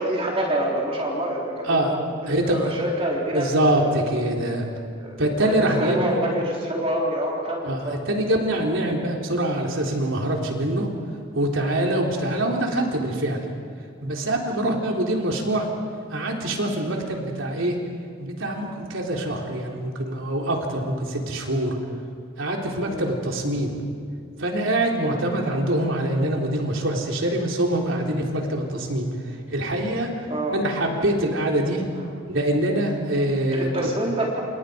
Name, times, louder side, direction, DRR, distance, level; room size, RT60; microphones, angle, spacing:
voice 1, 0.0-4.0 5.0-7.9 11.8-12.0 22.8-23.1 25.0-25.2 30.3-30.6 33.5-34.4, right 1 dB, 30° right, -3 dB, 3.6 m, -27 dB
voice 2, 2.3-2.7 3.3-4.6 5.2-6.3 7.6-10.9 11.3-13.4 14.0-15.7 16.1-17.8 18.2-21.8 22.4-23.8 24.4-29.1 29.5-30.1 30.5-31.9 32.3-33.9, right 1 dB, 75° right, 0 dB, 3.8 m, -24 dB
28.5 x 28.0 x 5.2 m, 2.2 s
head